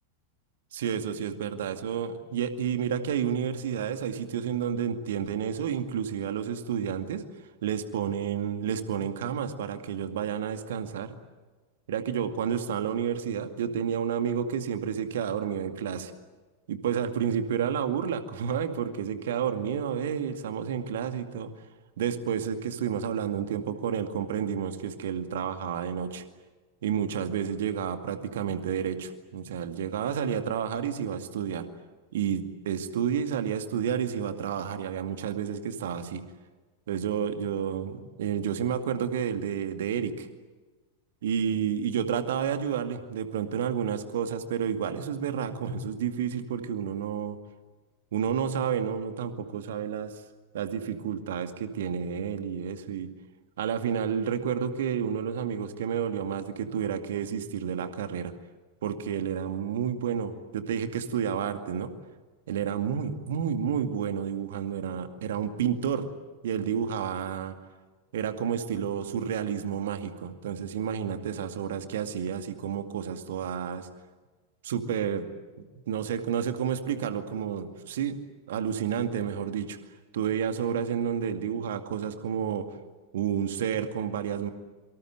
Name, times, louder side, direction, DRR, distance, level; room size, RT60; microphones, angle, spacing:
voice 1, 0.7-7.2 7.6-11.2 11.9-16.1 16.7-21.5 22.0-26.2 26.8-31.7 32.1-36.2 36.9-40.3 41.2-47.4 48.1-50.1 50.5-53.1 53.6-58.3 58.8-61.9 62.5-66.1 66.4-67.6 68.1-73.9 74.6-75.3 75.9-78.2 78.5-79.8 80.1-82.7 83.1-84.5, right 8 dB, 60° right, 8 dB, 2.3 m, -30 dB
27.0 x 24.5 x 7.9 m, 1.3 s
figure-of-eight pair, 90°, 0 cm